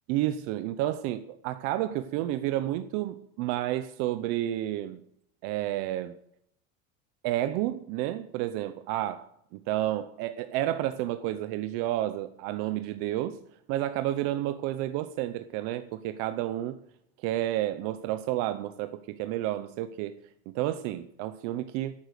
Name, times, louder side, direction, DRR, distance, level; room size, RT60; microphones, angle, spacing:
voice 1, 0.1-5.0 5.4-6.1 7.2-9.3 9.7-13.4 13.7-16.8 17.2-20.1 20.5-21.9, right 14 dB, 50° right, 0.6 m, -30 dB
11.0 x 9.2 x 6.6 m
cardioid pair, 175°, 30 cm